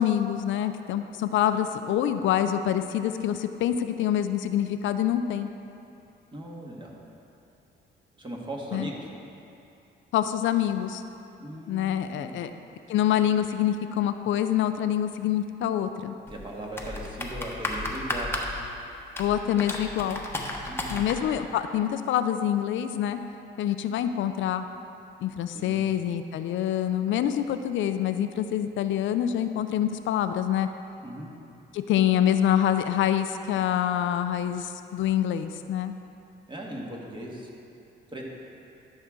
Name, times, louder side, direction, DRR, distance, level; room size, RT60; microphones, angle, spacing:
voice 1, 0.0-5.5 8.7-8.9 10.1-11.0 11.7-12.5 12.9-16.1 19.2-20.2 20.9-23.2 23.6-24.6 25.2-30.7 31.7-35.9, left 10 dB, 75° left, 9 dB, 0.4 m, -26 dB
voice 2, 6.3-6.9 8.2-9.1 11.4-12.4 16.3-18.3 20.7-21.0 25.5-25.8 31.0-31.3 36.5-37.5 38.1-38.3, right 1 dB, 25° right, -2 dB, 1.6 m, -38 dB
sound 1, 16.3-21.2, left 1 dB, 10° left, 1.0 m, -34 dB
12.0 x 6.4 x 3.7 m, 2.7 s
cardioid pair, 90°, 20 cm